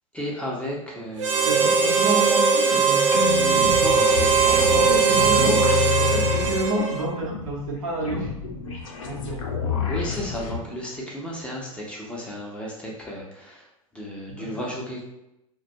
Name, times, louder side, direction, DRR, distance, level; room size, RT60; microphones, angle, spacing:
voice 1, 0.1-1.5 3.8-4.7 9.9-13.6 13.9-15.0, equal, 5° left, -4 dB, 0.5 m, -33 dB
Harmonica, 1.2-7.2, right 5 dB, 60° right, 0.4 m, -20 dB
voice 2, 1.4-3.0 4.5-8.8 9.0-9.8 14.3-14.7, right 1 dB, 75° right, -3 dB, 0.8 m, -30 dB
sound 1, 3.1-10.6, left 6 dB, 65° left, 0.5 m, -28 dB
2.2 x 2.1 x 2.7 m, 0.88 s
figure-of-eight pair, 95°, 18 cm